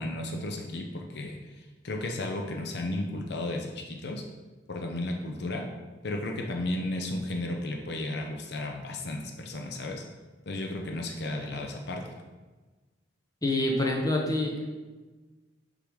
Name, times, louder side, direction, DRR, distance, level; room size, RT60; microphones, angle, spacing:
voice 1, 0.0-4.2 4.7-5.7 6.0-10.0 10.5-12.1, left 1 dB, 60° left, 2 dB, 0.7 m, -34 dB
voice 2, 13.4-14.8, left 1 dB, 20° left, -1 dB, 0.9 m, -27 dB
6.7 x 3.8 x 4.8 m, 1.3 s
head